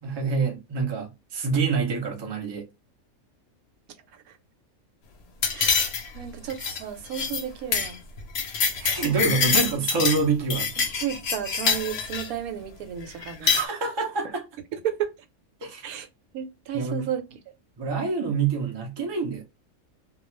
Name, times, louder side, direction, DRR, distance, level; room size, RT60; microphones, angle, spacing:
voice 1, 0.0-2.6 8.8-10.8 13.1-14.5 15.6-15.9 16.7-17.1 17.8-19.4, right 4 dB, 45° right, 0.3 m, -27 dB
sound 1, 5.4-6.2 6.5-6.8 7.1-7.4 7.7-7.9 8.2-10.2 10.5-12.3 13.2-13.6, left 6 dB, 60° left, 0.7 m, -25 dB
voice 2, 5.5-8.0 11.0-13.5 14.7-15.1 15.8-16.1 16.3-17.2, right 9 dB, 85° right, 1.1 m, -32 dB
2.3 x 2.3 x 3.0 m
omnidirectional pair, 1.5 m